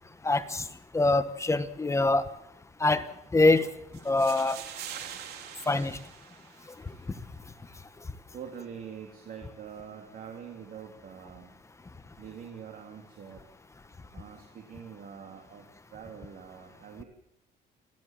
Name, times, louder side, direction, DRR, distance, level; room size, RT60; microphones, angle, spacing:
voice 1, 0.2-0.7 0.9-2.3 2.8-3.1 3.3-3.7 4.0-4.6 5.7-6.0 6.8-7.0, left 2 dB, 15° left, 11 dB, 1.3 m, -24 dB
sound 1, 3.9-7.0, right 9 dB, 70° right, 3.3 m, -43 dB
voice 2, 8.3-11.5 12.2-13.4 14.1-15.6 15.9-17.0, right 7 dB, 55° right, 2 dB, 3.2 m, -44 dB
29.0 x 12.5 x 7.5 m, 0.80 s
cardioid pair, 110°, 17 cm